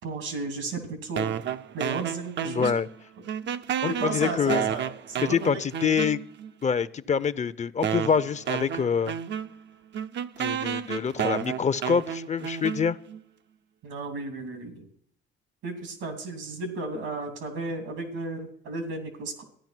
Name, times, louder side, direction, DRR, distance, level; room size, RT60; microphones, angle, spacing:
voice 1, 0.0-1.4 1.7-2.7 3.9-5.5 13.8-14.9 15.6-19.4, right 3 dB, 90° right, 7 dB, 3.2 m, -34 dB
sound 1, 1.2-3.0 3.3-6.5 7.2-7.3 7.8-13.2, right 9 dB, 65° right, 0.7 m, -31 dB
voice 2, 2.4-2.9 3.8-4.7 5.2-6.2 6.6-9.2 10.4-13.0, left 6 dB, 35° left, 15 dB, 0.6 m, -26 dB
13.5 x 10.5 x 6.1 m, 0.64 s
cardioid pair, 90°, 20 cm